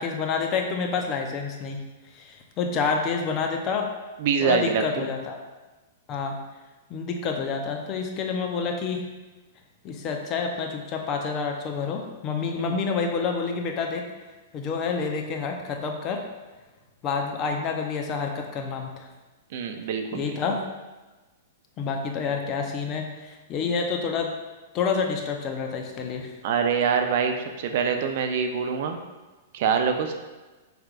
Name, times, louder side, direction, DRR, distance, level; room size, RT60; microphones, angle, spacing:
voice 1, 0.0-1.8 2.1-3.9 4.4-5.4 6.1-6.4 6.9-9.0 9.8-14.0 14.5-16.2 17.0-19.1 20.1-20.6 21.8-24.3 24.7-26.3, left 5 dB, 35° left, 3 dB, 0.6 m, -28 dB
voice 2, 4.2-5.1 12.6-12.8 19.5-20.3 26.4-29.0 29.5-30.1, right 6 dB, 60° right, 5 dB, 0.5 m, -25 dB
5.8 x 3.4 x 2.5 m, 1.2 s
hypercardioid pair, 125°, 0 cm